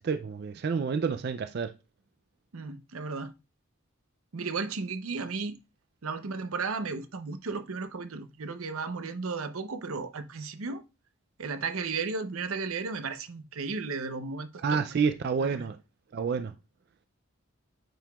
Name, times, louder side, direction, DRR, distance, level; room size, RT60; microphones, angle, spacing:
voice 1, 0.0-1.7 14.6-15.8 16.1-16.5, right 5 dB, 50° right, 0.3 m, -29 dB
voice 2, 2.5-3.3 4.3-5.6 6.0-10.8 11.4-14.8 15.4-15.7, right 4 dB, 85° right, 0.7 m, -34 dB
8.9 x 4.7 x 2.3 m
head